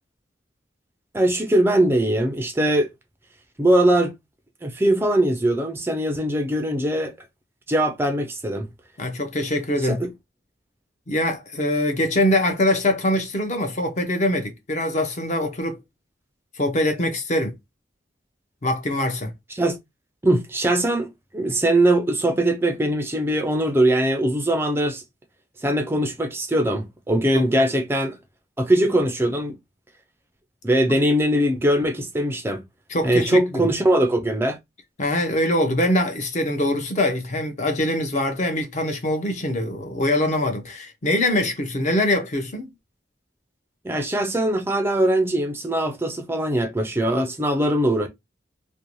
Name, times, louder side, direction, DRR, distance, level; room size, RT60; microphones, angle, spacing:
voice 1, 1.1-2.9 3.6-4.1 4.6-7.1 7.7-8.7 9.8-10.1 19.5-19.8 20.2-25.0 25.6-28.2 28.6-29.6 30.6-32.6 33.0-34.6 43.8-48.1, right 1 dB, 15° right, 0.3 m, -21 dB
voice 2, 9.0-10.0 11.1-15.8 16.6-17.5 18.6-19.3 27.3-27.5 32.9-33.7 35.0-42.7, left 1 dB, 40° left, 0.6 m, -23 dB
2.6 x 2.1 x 3.0 m
head